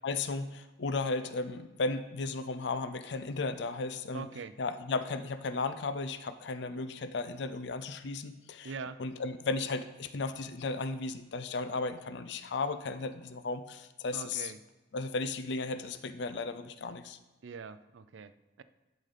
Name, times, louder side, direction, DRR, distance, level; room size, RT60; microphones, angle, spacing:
voice 1, 0.0-4.3 4.6-8.7 9.0-14.5 14.9-17.2, left 3 dB, 60° left, 10 dB, 0.5 m, -35 dB
voice 2, 4.1-4.6 8.6-9.0 14.1-14.6 17.4-18.6, right 5 dB, 70° right, 13 dB, 0.5 m, -43 dB
11.5 x 3.9 x 5.0 m, 1.2 s
head